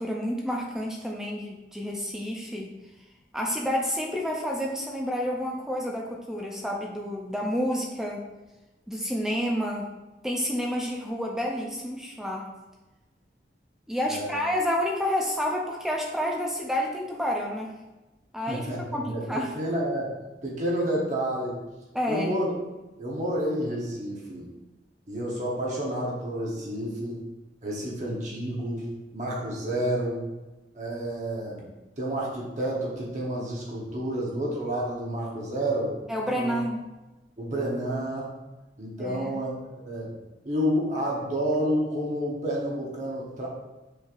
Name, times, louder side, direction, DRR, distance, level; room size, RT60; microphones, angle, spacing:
voice 1, 0.0-2.7 3.3-8.2 8.9-9.9 10.2-12.5 13.9-17.8 18.3-18.7 18.9-19.5 21.9-22.3 36.1-36.9 39.0-39.4, equal, 5° right, -1 dB, 0.4 m, -29 dB
voice 2, 14.0-14.4 18.5-20.1 20.4-21.6 22.1-22.5 23.0-24.5 25.1-27.2 27.6-28.9 29.1-30.2 30.7-31.6 32.0-35.9 36.3-36.6 37.4-38.3 38.8-40.1 40.4-43.5, right 1 dB, 45° right, -4 dB, 0.9 m, -30 dB
6.2 x 3.2 x 2.4 m, 1.1 s
head